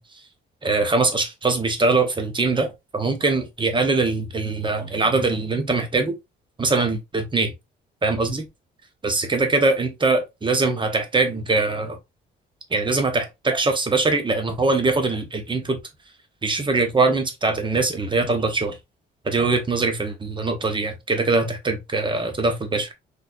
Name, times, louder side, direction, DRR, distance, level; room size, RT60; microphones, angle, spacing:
voice 1, 0.6-6.1 6.6-7.5 8.0-8.5 9.0-12.0 12.7-15.8 16.4-18.8 19.2-22.9, right 3 dB, 25° right, 1.0 m, -22 dB
4.1 x 2.7 x 2.5 m
cardioid pair, 90°, 20 cm